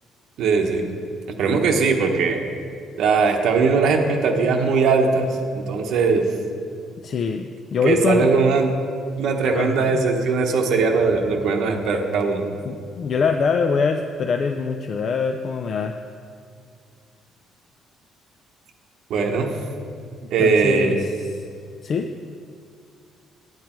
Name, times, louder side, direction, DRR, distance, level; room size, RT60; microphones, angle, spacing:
voice 1, 0.4-0.9 1.4-2.4 3.0-5.3 5.5-6.3 7.8-8.7 9.2-12.4 19.1-19.6 20.3-21.0, right 4 dB, 65° right, 2 dB, 1.1 m, -20 dB
voice 2, 7.0-8.3 9.5-10.0 12.7-15.9 20.4-21.5 21.8-22.1, left 5 dB, 40° left, 5 dB, 0.4 m, -24 dB
9.6 x 9.4 x 4.4 m, 2.2 s
cardioid pair, 155°, 0 cm